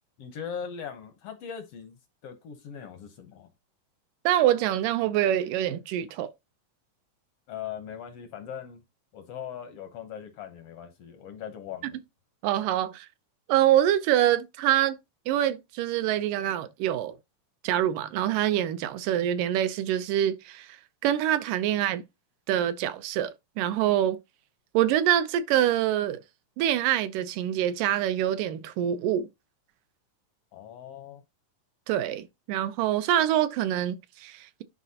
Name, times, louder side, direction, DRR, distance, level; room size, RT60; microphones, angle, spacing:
voice 1, 0.2-3.5 7.5-8.8 9.1-12.0 30.5-31.2, left 8 dB, 75° left, 1.4 m, -40 dB
voice 2, 4.3-6.3 12.4-13.1 13.5-15.0 15.3-17.2 17.6-22.0 22.5-24.2 24.7-26.2 26.6-29.3 31.9-34.6, right 11 dB, 80° right, 2.2 m, -25 dB
11.0 x 4.1 x 2.8 m
omnidirectional pair, 3.9 m